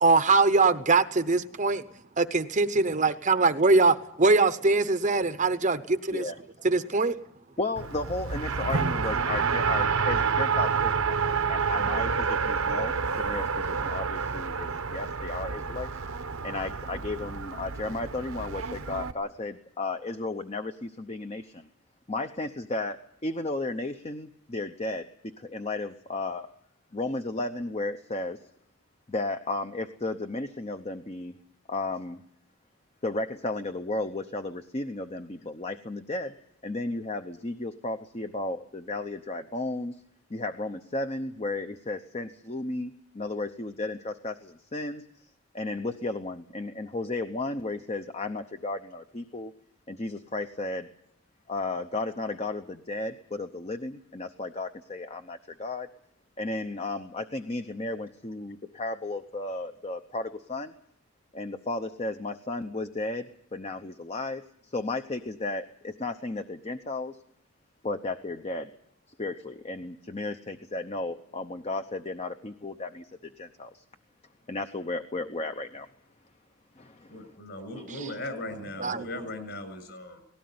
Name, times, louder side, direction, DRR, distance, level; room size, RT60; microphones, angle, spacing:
voice 1, 0.0-1.8 2.2-6.2 6.6-7.2 78.8-79.1, right 3 dB, 35° right, 11 dB, 0.8 m, -22 dB
voice 2, 7.6-11.2 11.5-15.9 16.4-21.7 22.1-26.5 26.9-28.4 29.1-31.3 31.7-32.2 33.0-36.3 36.6-40.0 40.3-45.2 45.5-49.5 49.9-50.9 51.5-55.9 56.4-60.7 61.3-67.2 67.8-68.7 69.2-73.8 74.5-75.9 76.8-77.3 77.8-78.0, left 2 dB, 30° left, 7 dB, 0.8 m, -34 dB
Race car auto racing, 7.8-19.1, right 5 dB, 70° right, 1.0 m, -29 dB
voice 3, 77.1-80.2, left 1 dB, 50° left, 10 dB, 6.7 m, -38 dB
19.0 x 17.0 x 9.5 m, 0.72 s
head